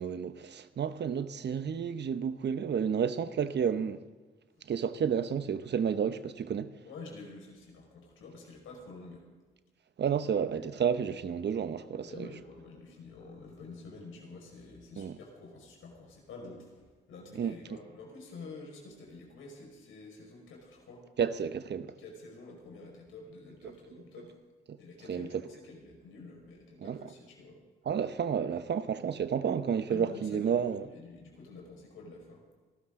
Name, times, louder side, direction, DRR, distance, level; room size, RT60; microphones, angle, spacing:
voice 1, 0.0-4.0 4.7-6.7 10.0-12.3 15.0-15.2 17.3-17.6 21.2-21.9 24.7-24.8 25.1-25.4 26.8-27.0 27.9-30.9, right 7 dB, 55° right, 1.0 m, -31 dB
voice 2, 6.8-9.3 12.0-21.1 22.0-24.4 24.8-27.6 29.9-32.4, left 3 dB, 80° left, 5.2 m, -48 dB
28.0 x 13.0 x 3.8 m
supercardioid pair, 50°, 21 cm